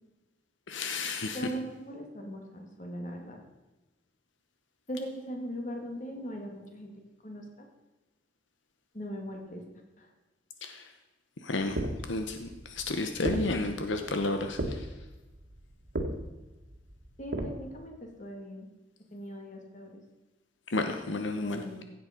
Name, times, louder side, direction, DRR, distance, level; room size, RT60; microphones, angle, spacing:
voice 1, 0.7-1.4 10.6-10.9 11.4-14.9 20.7-21.6, left 2 dB, 85° left, 6 dB, 1.0 m, -32 dB
voice 2, 1.3-3.4 4.9-7.7 8.9-9.6 10.0-10.1 17.2-18.7 19.1-20.0 21.4-21.8, equal, 40° left, 2 dB, 2.1 m, -40 dB
sound 1, 11.6-17.5, right 1 dB, 65° right, 1.8 m, -37 dB
16.0 x 8.1 x 5.2 m, 1.1 s
head